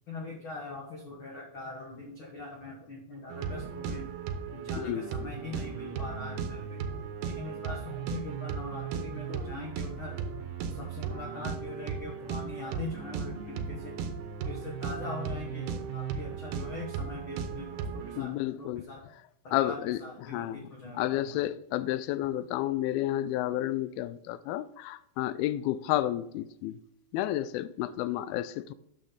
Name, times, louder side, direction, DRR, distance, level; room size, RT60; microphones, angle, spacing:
voice 1, 0.1-4.1 4.5-10.2 10.7-14.1 14.4-19.0 19.4-21.4 28.3-28.4, left 3 dB, 70° left, 1.2 m, -42 dB
sound 1, 3.3-18.2, right 6 dB, 80° right, 2.7 m, -36 dB
voice 2, 4.8-5.3 18.2-18.9 19.5-20.7 20.9-26.8 27.1-28.7, left 13 dB, 85° left, 2.4 m, -31 dB
9.6 x 7.3 x 3.9 m
omnidirectional pair, 4.3 m